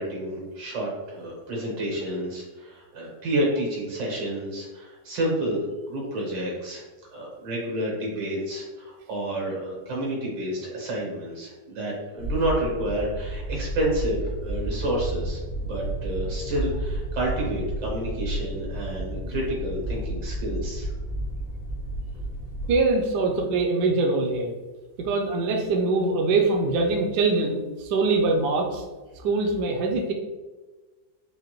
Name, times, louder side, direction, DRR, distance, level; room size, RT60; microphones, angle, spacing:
voice 1, 0.0-6.8 7.1-20.9, right 1 dB, 90° right, -3 dB, 2.0 m, -29 dB
sound 1, 12.2-22.7, right 1 dB, 70° left, 1.6 m, -31 dB
voice 2, 22.7-24.5 25.0-28.8 29.2-30.1, right 3 dB, 70° right, 1 dB, 1.1 m, -23 dB
4.9 x 2.5 x 3.0 m, 1.2 s
omnidirectional pair, 1.9 m